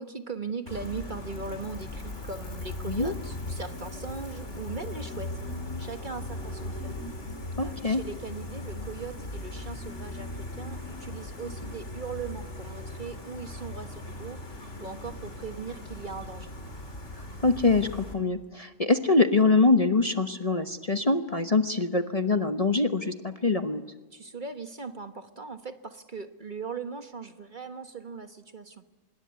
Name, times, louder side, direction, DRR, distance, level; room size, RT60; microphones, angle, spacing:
voice 1, 0.0-5.4 5.8-7.0 7.6-16.5 24.1-28.8, right 5 dB, 40° right, 8 dB, 1.4 m, -39 dB
Gull seagull, 0.7-18.1, left 2 dB, 60° left, 3.9 m, -38 dB
voice 2, 7.6-8.0 17.4-23.8, left 3 dB, 30° left, 8 dB, 1.1 m, -24 dB
26.0 x 21.5 x 9.5 m, 1.2 s
omnidirectional pair, 1.4 m